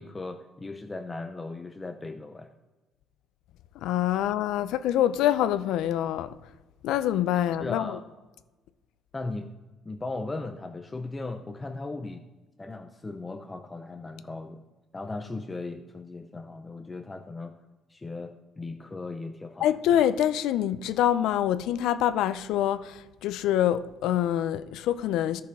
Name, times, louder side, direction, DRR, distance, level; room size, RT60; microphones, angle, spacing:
voice 1, 0.0-2.5 7.6-8.0 9.1-9.5 9.9-12.3 12.6-14.6 14.9-17.6 17.9-19.7, left 3 dB, 15° left, 0.4 m, -37 dB
voice 2, 3.8-6.4 6.8-8.0 19.6-25.4, left 11 dB, 75° left, 0.5 m, -25 dB
13.5 x 5.9 x 3.6 m
cardioid pair, 160°, 0 cm